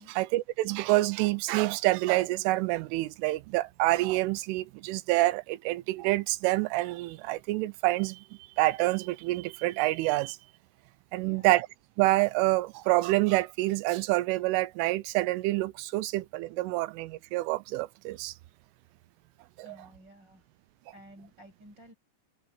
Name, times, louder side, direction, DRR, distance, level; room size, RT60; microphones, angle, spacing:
voice 1, 0.0-8.2 8.6-10.4 11.1-11.7 12.0-18.3 19.6-19.8, right 19 dB, 85° right, 3.3 m, -27 dB
voice 2, 19.6-20.4 20.9-21.9, equal, 20° right, 8.0 m, -53 dB
omnidirectional pair, 5.6 m